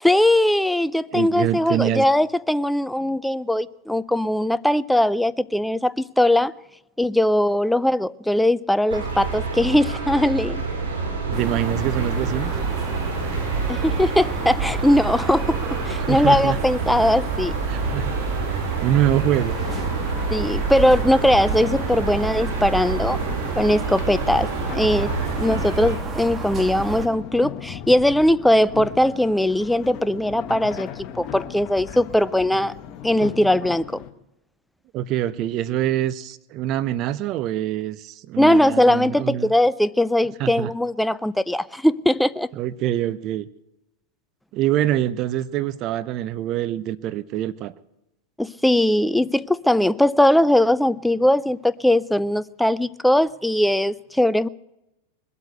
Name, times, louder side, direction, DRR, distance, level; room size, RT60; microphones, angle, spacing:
voice 1, 0.0-6.5 7.0-10.6 13.7-17.5 20.3-23.2 23.6-25.1 25.4-32.7 33.0-34.0 38.4-42.5 48.4-54.5, left 1 dB, 5° left, 0.5 m, -20 dB
voice 2, 1.1-2.1 11.3-12.5 16.0-16.6 17.7-18.1 18.8-19.6 34.9-39.5 40.4-40.7 42.6-43.5 44.5-47.7, right 12 dB, 45° right, 0.8 m, -24 dB
sound 1, 8.9-26.0, right 4 dB, 80° right, 4.4 m, -28 dB
sound 2, 11.3-27.1, right 4 dB, 25° right, 2.2 m, -30 dB
sound 3, 19.3-34.1, left 9 dB, 40° left, 1.6 m, -38 dB
21.5 x 8.2 x 7.9 m
hypercardioid pair, 105°, 0 cm